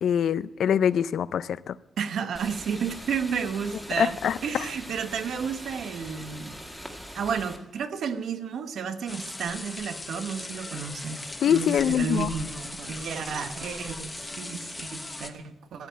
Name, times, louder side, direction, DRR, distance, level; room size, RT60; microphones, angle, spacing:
voice 1, 0.0-1.7 4.0-4.4 11.4-12.3, left 9 dB, 75° left, 0.4 m, -24 dB
voice 2, 2.0-6.6 7.1-15.9, right 6 dB, 75° right, 1.0 m, -32 dB
sound 1, 2.3-7.6, equal, 5° right, 1.7 m, -42 dB
sound 2, 9.1-15.3, left 2 dB, 15° left, 1.0 m, -38 dB
13.0 x 9.2 x 7.6 m
wide cardioid pair, 150°, 0 cm